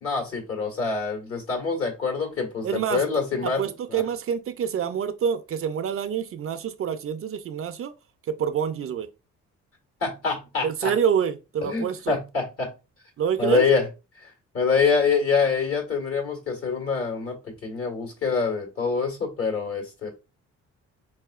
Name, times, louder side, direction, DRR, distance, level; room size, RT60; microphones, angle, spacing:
voice 1, 0.0-4.0 10.0-10.9 11.6-12.7 13.4-13.8 14.2-20.1, left 5 dB, 50° left, 1.5 m, -25 dB
voice 2, 2.6-3.0 3.4-7.9 8.3-9.1 10.6-12.2 13.2-13.6, right 8 dB, 45° right, 0.5 m, -27 dB
4.2 x 2.7 x 2.3 m
cardioid pair, 90°, 30 cm